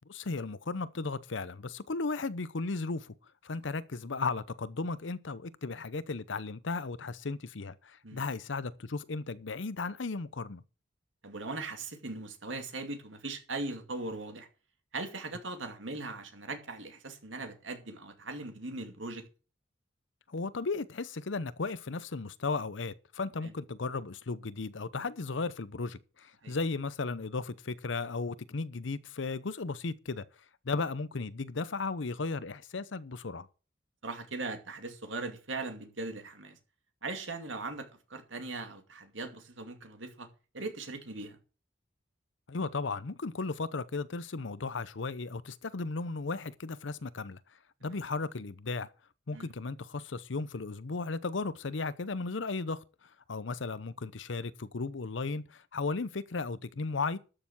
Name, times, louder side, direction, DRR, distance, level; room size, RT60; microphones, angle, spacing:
voice 1, 0.1-3.1 3.4-10.6 20.3-30.2 30.6-33.5 42.5-47.4 47.8-48.9 49.3-52.8 53.3-57.2, left 3 dB, 70° left, 0.7 m, -35 dB
voice 2, 11.2-14.5 14.9-19.2 23.4-23.5 26.4-26.6 34.0-36.6 37.0-40.3 40.5-41.4 49.3-49.5, right 3 dB, 75° right, 2.5 m, -39 dB
12.5 x 6.9 x 6.0 m
head